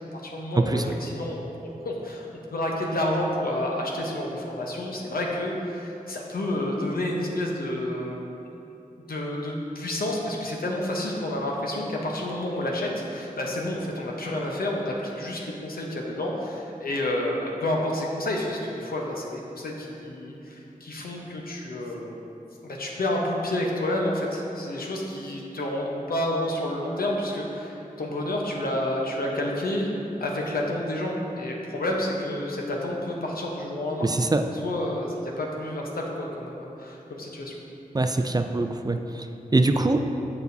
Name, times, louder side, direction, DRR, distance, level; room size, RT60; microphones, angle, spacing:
voice 1, 0.1-8.4 9.0-22.1 22.6-29.9 30.2-34.1 34.4-37.6, left 1 dB, 85° left, -1 dB, 0.8 m, -29 dB
voice 2, 34.0-34.4 37.9-39.0 39.5-40.0, right 2 dB, 25° right, 6 dB, 0.4 m, -22 dB
6.8 x 6.8 x 2.7 m, 2.9 s
cardioid pair, 50°, 15 cm